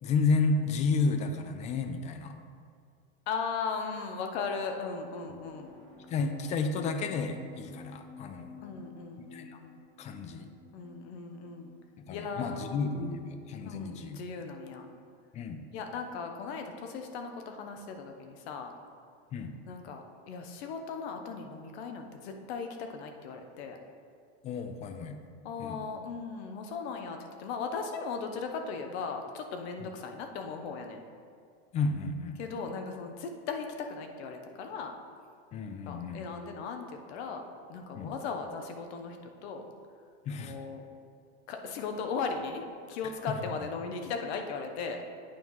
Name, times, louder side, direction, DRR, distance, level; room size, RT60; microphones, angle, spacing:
voice 1, 0.0-2.4 6.1-8.6 9.3-9.6 10.0-10.5 12.0-14.2 15.3-15.6 19.3-19.5 24.4-25.2 25.6-25.8 31.7-32.4 35.5-36.2 37.9-38.1 40.2-40.6, left 4 dB, 25° left, 7 dB, 0.3 m, -31 dB
voice 2, 3.3-5.7 8.6-9.8 10.7-11.7 12.1-13.1 13.6-14.9 15.7-18.7 19.7-23.8 25.4-31.0 32.4-34.9 35.7-37.4 37.7-39.6 40.4-40.8 41.5-45.0, left 5 dB, 80° left, 5 dB, 0.9 m, -37 dB
sound 1, 5.1-12.7, left 4 dB, 60° left, 1.3 m, -53 dB
8.9 x 3.0 x 5.5 m, 2.2 s
supercardioid pair, 145°, 32 cm